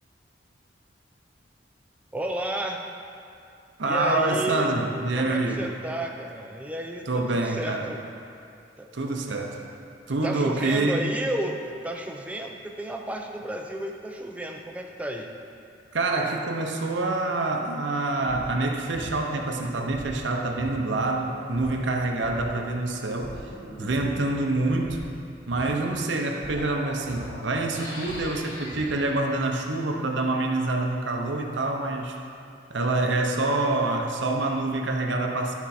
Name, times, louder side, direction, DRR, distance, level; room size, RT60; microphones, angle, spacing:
voice 1, 2.1-2.9 3.8-4.8 5.1-8.0 8.8-8.9 10.2-15.3, right 1 dB, 10° right, 2 dB, 0.5 m, -32 dB
voice 2, 3.8-5.7 7.1-7.9 8.9-9.6 10.1-11.1 15.9-23.4 23.8-25.1 25.5-32.2 32.7-35.6, right 2 dB, 75° right, 2 dB, 0.7 m, -26 dB
sound 1, 18.0-29.1, equal, 25° left, 1.9 m, -41 dB
11.5 x 4.5 x 4.3 m, 2.6 s
head